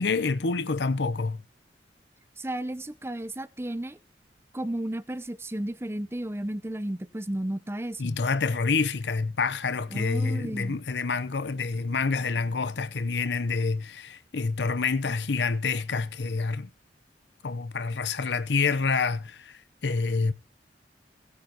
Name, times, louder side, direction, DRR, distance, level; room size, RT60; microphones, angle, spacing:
voice 1, 0.0-1.4 8.0-16.7 17.4-20.3, left 4 dB, 75° left, 0.7 m, -27 dB
voice 2, 2.4-4.0 4.5-8.2 9.9-10.8, right 1 dB, 15° right, 0.7 m, -33 dB
16.5 x 9.6 x 2.9 m
head